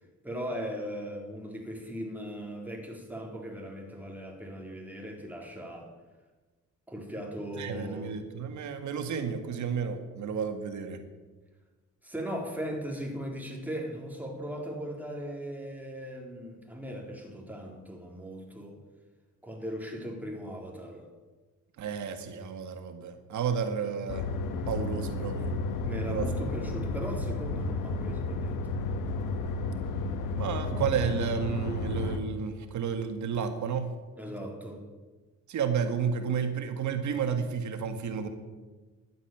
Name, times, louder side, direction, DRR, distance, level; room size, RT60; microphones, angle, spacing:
voice 1, 0.2-5.9 6.9-8.1 12.0-18.8 19.4-21.1 25.8-28.6 34.2-34.8, equal, 5° right, 0 dB, 4.0 m, -38 dB
voice 2, 7.6-11.0 21.8-25.5 26.1-26.3 30.4-33.9 35.5-38.3, right 6 dB, 70° right, 7 dB, 2.1 m, -32 dB
sound 1, 24.1-32.2, left 3 dB, 90° left, 1.6 m, -32 dB
12.5 x 9.6 x 9.4 m, 1.3 s
cardioid pair, 90°, 30 cm